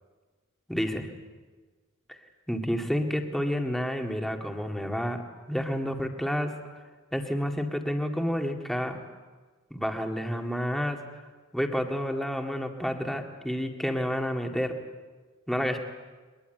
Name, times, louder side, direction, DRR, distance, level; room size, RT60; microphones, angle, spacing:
voice 1, 0.7-1.1 2.1-2.2 2.5-5.2 5.5-6.5 7.1-9.0 9.7-11.0 11.5-14.7 15.5-15.8, equal, ahead, 3 dB, 2.0 m, -29 dB
22.5 x 21.5 x 9.1 m, 1.4 s
head